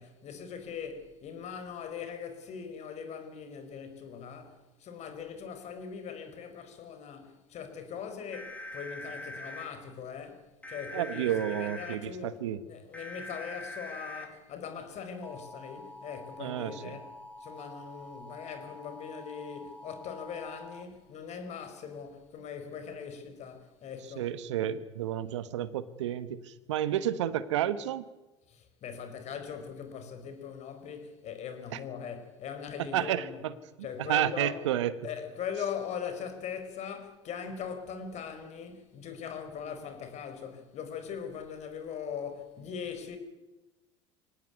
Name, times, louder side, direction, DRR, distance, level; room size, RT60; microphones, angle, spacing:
voice 1, 0.0-24.3 24.6-24.7 28.5-33.4 33.8-34.6 35.0-43.2, left 7 dB, 50° left, 5.1 m, -41 dB
sound 1, 8.3-9.6 10.6-12.0 12.9-14.3 15.2-20.8, left 1 dB, 10° left, 5.0 m, -44 dB
voice 2, 10.9-12.6 16.4-17.0 24.1-28.1 32.8-33.5 34.1-34.9, right 11 dB, 75° right, 1.3 m, -31 dB
25.0 x 18.5 x 9.5 m
figure-of-eight pair, 70°, 15 cm